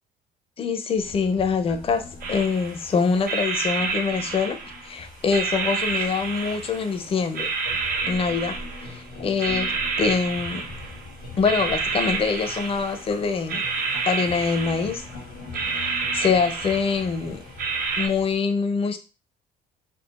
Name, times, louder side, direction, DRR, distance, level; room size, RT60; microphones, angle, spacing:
voice 1, 0.6-7.5 8.1-10.7 11.4-13.7 14.1-15.0 15.7-17.4 18.0-19.0, left 5 dB, 35° left, 0.5 m, -25 dB
sound 1, 0.9-18.4, left 3 dB, 85° left, 1.2 m, -42 dB
sound 2, 2.2-2.9 3.3-4.9 5.3-7.0 7.3-9.0 9.4-11.1 11.4-13.1 13.5-15.2 15.5-17.2 17.6-18.1, right 4 dB, 60° right, 0.7 m, -29 dB
3.6 x 2.3 x 2.5 m
cardioid pair, 110°, 17 cm